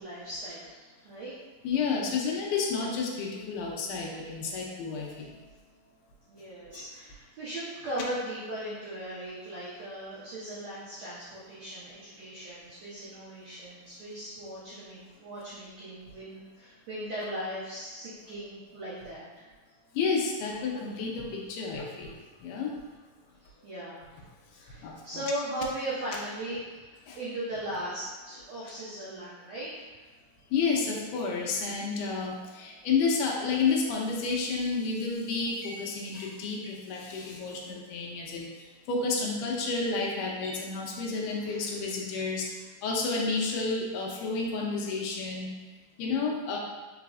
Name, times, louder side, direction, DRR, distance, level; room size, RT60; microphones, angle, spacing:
voice 1, 0.0-1.3 6.3-19.3 23.4-24.1 24.5-29.9 37.1-37.2 41.3-41.7 42.1-42.2, right 1 dB, 80° right, -9 dB, 1.5 m, -38 dB
voice 2, 1.6-5.4 6.7-6.8 19.9-22.1 22.4-22.7 24.8-24.9 27.1-27.2 30.5-38.5 38.9-42.5 42.8-45.5 46.0-46.6, left 4 dB, 80° left, -2 dB, 2.0 m, -30 dB
4.9 x 4.0 x 2.4 m, 1.3 s
omnidirectional pair, 4.2 m